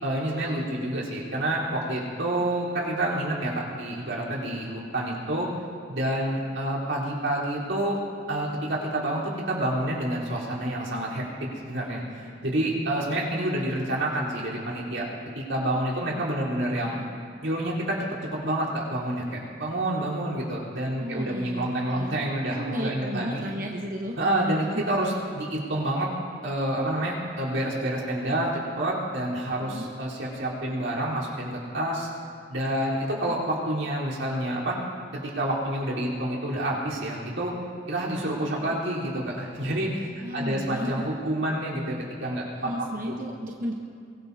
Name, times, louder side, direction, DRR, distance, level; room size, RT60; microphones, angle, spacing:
voice 1, 0.0-5.5 5.9-8.0 8.3-15.1 15.3-17.0 17.4-23.4 24.2-26.1 26.4-32.1 32.5-34.8 35.1-37.5 37.9-42.7 43.1-43.2, right 1 dB, 80° right, -6 dB, 4.0 m, -28 dB
voice 2, 21.0-24.2 24.7-24.8 29.6-29.9 33.2-33.3 38.6-38.8 40.2-40.9 42.6-43.7, equal, 45° right, -1 dB, 1.0 m, -34 dB
23.5 x 19.0 x 2.8 m, 2.3 s
head